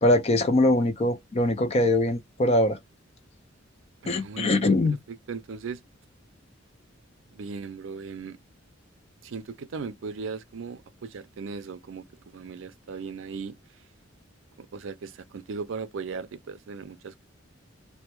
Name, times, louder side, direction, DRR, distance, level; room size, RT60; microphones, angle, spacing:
voice 1, 0.0-2.8 4.1-5.0, left 1 dB, 30° left, 0.5 m, -22 dB
voice 2, 4.0-4.8 5.1-5.8 7.3-8.4 9.2-13.5 14.7-17.2, right 5 dB, 70° right, 0.4 m, -37 dB
2.1 x 2.1 x 2.9 m
head